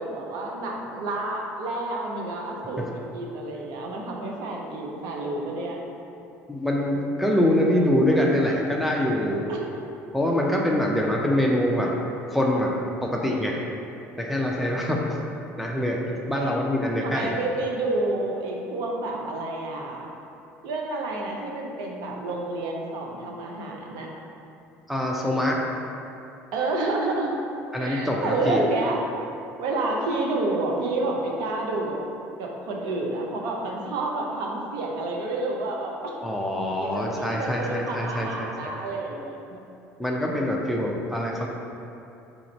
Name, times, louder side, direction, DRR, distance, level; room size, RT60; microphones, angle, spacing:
voice 1, 0.0-5.8 9.5-9.6 16.3-16.6 17.0-20.1 20.6-24.1 26.5-27.3 27.8-29.0 29.6-32.0 32.4-36.1 36.8-39.6, right 2 dB, 65° right, -1 dB, 0.7 m, -29 dB
voice 2, 6.5-9.5 10.1-11.9 12.3-12.7 13.0-13.6 14.2-15.0 15.6-17.3 24.9-25.6 27.7-28.6 36.2-38.7 40.0-41.5, left 1 dB, ahead, -2 dB, 0.5 m, -24 dB
3.9 x 2.5 x 4.4 m, 2.8 s
hypercardioid pair, 70°, 7 cm